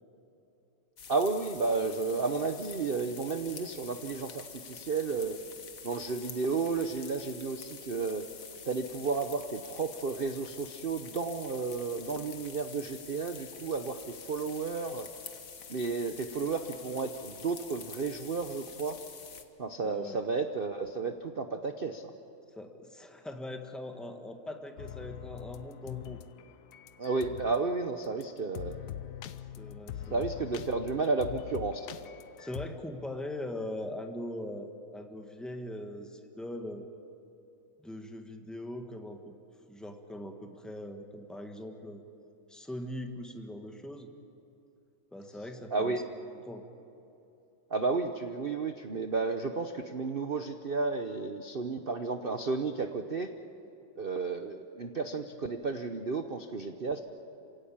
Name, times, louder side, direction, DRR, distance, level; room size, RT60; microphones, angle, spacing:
sound 1, 1.0-19.4, left 6 dB, 45° left, 1.5 m, -47 dB
voice 1, 1.1-5.4 5.8-8.3 8.7-15.1 15.7-19.0 19.6-22.1 27.0-28.8 30.1-31.9 45.7-46.0 47.7-53.3 54.0-57.0, right 4 dB, 90° right, 7 dB, 0.4 m, -32 dB
voice 2, 19.8-20.2 22.5-26.2 29.6-30.3 32.4-36.9 37.8-39.3 39.7-42.0 42.5-44.1 45.1-46.6, left 1 dB, ahead, 4 dB, 1.3 m, -41 dB
sound 2, 24.8-27.6 28.0-28.2 28.5-32.7, left 12 dB, 65° left, 1.1 m, -43 dB
26.5 x 17.0 x 8.7 m, 2.8 s
omnidirectional pair, 2.3 m